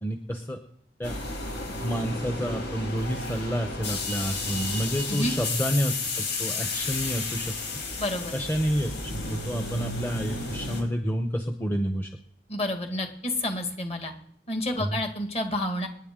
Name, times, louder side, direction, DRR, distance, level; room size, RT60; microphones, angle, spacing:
voice 1, 0.0-0.6 1.0-1.2 1.8-7.5 8.3-12.1 14.8-15.0, equal, 10° left, 5 dB, 0.8 m, -29 dB
sound 1, 1.0-10.8, left 3 dB, 90° left, 4.3 m, -32 dB
voice 2, 8.0-8.3 12.5-14.1 14.5-15.9, left 1 dB, 35° left, 4 dB, 1.9 m, -29 dB
26.5 x 10.0 x 3.7 m, 0.66 s
head